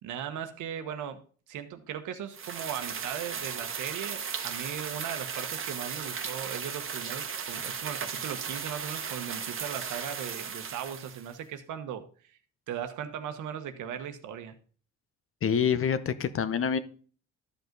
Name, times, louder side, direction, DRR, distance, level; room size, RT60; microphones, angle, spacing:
voice 1, 0.0-1.2 1.5-12.4 12.7-14.5, right 9 dB, 80° right, 8 dB, 1.1 m, -38 dB
sound 1, 2.3-11.3, right 6 dB, 45° right, 1.2 m, -36 dB
voice 2, 15.4-16.8, left 7 dB, 45° left, 13 dB, 0.8 m, -26 dB
12.0 x 5.3 x 3.9 m, 0.42 s
cardioid pair, 90°, 30 cm